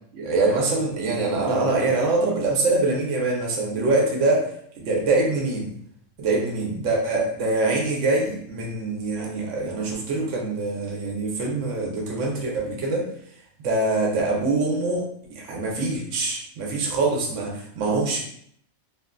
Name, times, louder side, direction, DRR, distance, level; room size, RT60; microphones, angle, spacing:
voice 1, 0.1-5.7 6.2-13.1 13.6-18.2, right 2 dB, 65° right, -1 dB, 0.9 m, -24 dB
2.9 x 2.3 x 2.2 m, 0.66 s
omnidirectional pair, 1.4 m